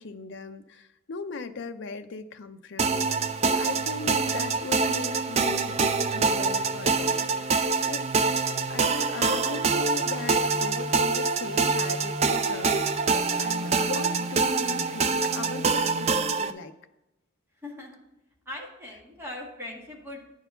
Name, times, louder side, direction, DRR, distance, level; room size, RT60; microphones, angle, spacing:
voice 1, 0.0-8.0 8.7-13.1 13.4-16.7, left 4 dB, 60° left, 8 dB, 0.5 m, -38 dB
sound 1, 2.8-16.5, right 4 dB, 30° right, 0.4 m, -25 dB
voice 2, 7.1-7.6 17.6-18.0 18.4-20.2, left 1 dB, 10° right, -3 dB, 1.8 m, -40 dB
9.9 x 4.6 x 5.6 m, 0.93 s
head